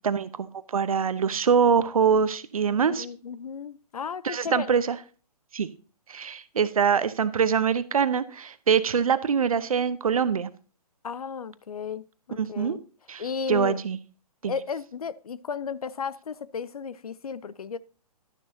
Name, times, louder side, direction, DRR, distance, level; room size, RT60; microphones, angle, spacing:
voice 1, 0.0-3.1 4.2-5.0 5.5-5.7 6.1-10.5 12.4-12.8 13.1-13.2 13.5-14.0 14.4-14.5, right 6 dB, 60° right, 1.0 m, -24 dB
voice 2, 2.7-4.8 11.0-12.8 13.2-13.8 14.4-17.8, left 6 dB, 65° left, 0.7 m, -34 dB
12.0 x 10.5 x 2.8 m
figure-of-eight pair, 130°, 20 cm